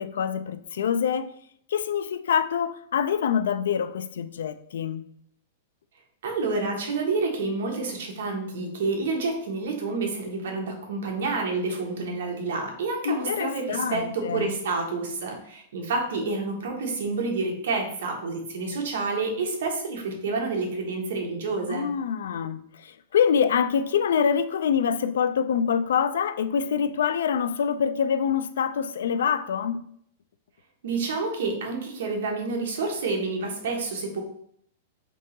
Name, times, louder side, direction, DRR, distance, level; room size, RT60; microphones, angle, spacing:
voice 1, 0.0-1.3 1.7-5.0 13.0-14.5 21.7-29.8, left 7 dB, 85° left, 0.3 m, -25 dB
voice 2, 6.2-21.9 30.8-34.2, right 3 dB, 70° right, 1.1 m, -29 dB
3.7 x 2.8 x 3.9 m
supercardioid pair, 175°, 0 cm